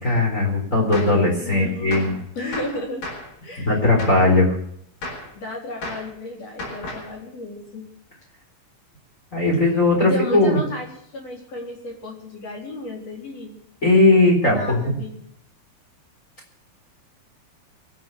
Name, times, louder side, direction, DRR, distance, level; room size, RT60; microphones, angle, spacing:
voice 1, 0.0-2.1 3.6-4.5 9.3-10.6 13.8-15.0, left 2 dB, 20° left, -2 dB, 4.1 m, -18 dB
Gunshot gunfire, 0.9-1.2 1.9-2.2 2.5-3.3 4.0-4.3 5.0-5.3 5.8-6.1 6.6-7.1, left 2 dB, 70° left, 6.1 m, -34 dB
voice 2, 1.3-2.0 2.3-3.1 3.4-4.0 5.3-7.8 10.0-13.6 14.5-15.2, left 1 dB, 45° left, -1 dB, 4.9 m, -33 dB
24.0 x 8.0 x 6.9 m, 0.69 s
omnidirectional pair, 4.2 m